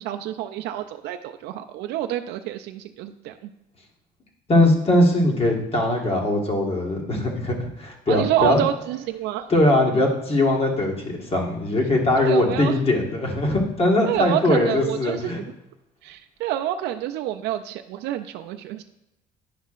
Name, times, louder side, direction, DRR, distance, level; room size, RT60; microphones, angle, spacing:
voice 1, 0.0-3.5 8.1-9.5 12.2-12.7 14.1-15.5 16.0-18.8, right 12 dB, 85° right, 6 dB, 0.4 m, -28 dB
voice 2, 4.5-8.6 9.5-15.4, left 1 dB, 35° left, 0 dB, 1.5 m, -21 dB
10.5 x 5.5 x 2.5 m, 0.87 s
cardioid pair, 110°, 17 cm